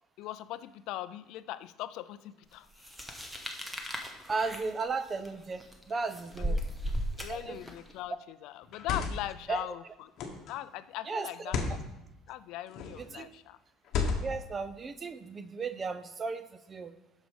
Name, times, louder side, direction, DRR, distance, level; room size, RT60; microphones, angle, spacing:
voice 1, 0.2-2.7 4.0-4.2 6.4-6.6 7.2-10.1 10.5-11.8 12.3-13.6, left 14 dB, 60° left, 14 dB, 0.3 m, -40 dB
sound 1, 2.8-7.9, equal, 5° right, 0.8 m, -36 dB
voice 2, 4.3-6.6 7.3-7.6 9.5-9.7 11.1-11.3 13.0-13.3 14.2-16.9, right 4 dB, 20° right, 13 dB, 0.4 m, -35 dB
sound 2, 7.5-7.8 8.6-9.4 10.2-10.5 11.4-11.8 12.7-13.1 13.8-14.5, left 5 dB, 45° left, 1.2 m, -33 dB
7.9 x 6.3 x 5.3 m, 0.91 s
cardioid pair, 165°, 0 cm